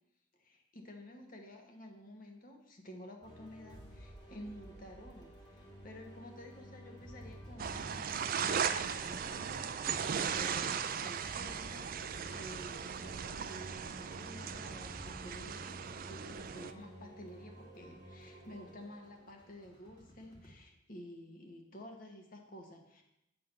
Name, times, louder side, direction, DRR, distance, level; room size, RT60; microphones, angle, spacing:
voice 1, 0.3-15.8 16.1-23.0, equal, 45° left, 3 dB, 1.3 m, -51 dB
sound 1, 3.2-20.5, equal, 20° left, 1.8 m, -52 dB
sound 2, 7.6-16.7, right 7 dB, 45° right, 0.4 m, -37 dB
8.9 x 3.8 x 6.8 m, 0.84 s
head